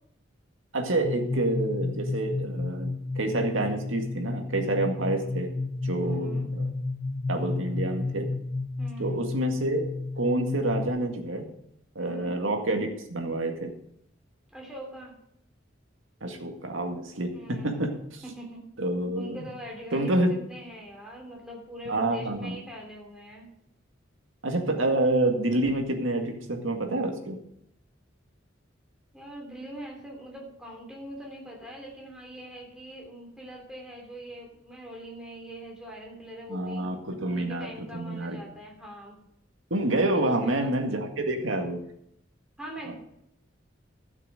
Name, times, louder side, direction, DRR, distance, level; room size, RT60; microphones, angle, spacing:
voice 1, 0.7-5.5 5.8-6.7 7.3-8.3 9.0-9.9 10.2-11.5 12.0-13.7 16.2-18.2 18.8-19.4 19.9-20.4 21.9-22.6 24.4-27.4 36.5-38.4 39.7-41.8 42.9-43.0, right 1 dB, 85° right, 3 dB, 2.0 m, -28 dB
sound 1, 1.0-10.9, left 3 dB, 85° left, 1.0 m, -32 dB
voice 2, 6.0-6.5 8.8-9.3 12.0-12.4 14.5-15.2 17.3-17.8 18.2-18.6 19.2-23.5 29.1-36.9 37.2-39.2 40.1-40.7 42.6-42.9, right 1 dB, 5° right, -2 dB, 3.2 m, -42 dB
12.5 x 6.6 x 6.5 m, 0.76 s
head